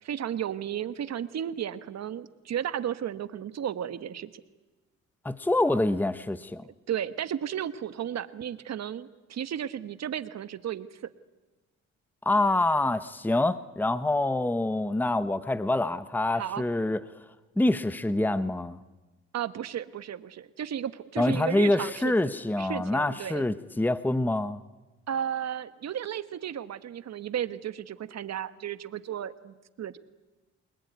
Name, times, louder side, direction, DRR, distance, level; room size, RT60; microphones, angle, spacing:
voice 1, 0.0-4.3 6.9-11.0 16.3-16.6 19.3-22.3 22.6-23.4 25.1-30.0, right 9 dB, 60° right, 13 dB, 1.4 m, -34 dB
voice 2, 5.2-6.6 12.2-17.0 17.6-18.8 21.2-24.6, left 2 dB, 5° left, 14 dB, 1.0 m, -26 dB
28.5 x 20.5 x 9.5 m, 1.2 s
cardioid pair, 90°, 30 cm